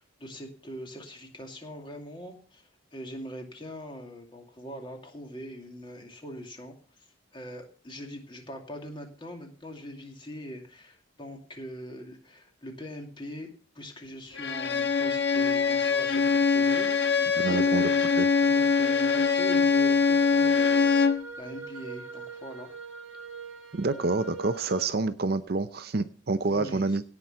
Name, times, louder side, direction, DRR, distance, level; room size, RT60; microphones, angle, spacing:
voice 1, 0.0-7.1 7.3-18.0 18.4-22.7 26.5-26.9, equal, 25° left, 2 dB, 2.4 m, -42 dB
Bowed string instrument, 14.4-21.3, left 5 dB, 55° left, 1.2 m, -23 dB
voice 2, 17.3-17.9 18.2-18.3 23.7-27.0, right 3 dB, 45° right, 12 dB, 0.6 m, -28 dB
sound 1, 18.4-24.9, right 4 dB, 80° right, 1.3 m, -43 dB
17.0 x 5.9 x 6.8 m, 0.43 s
head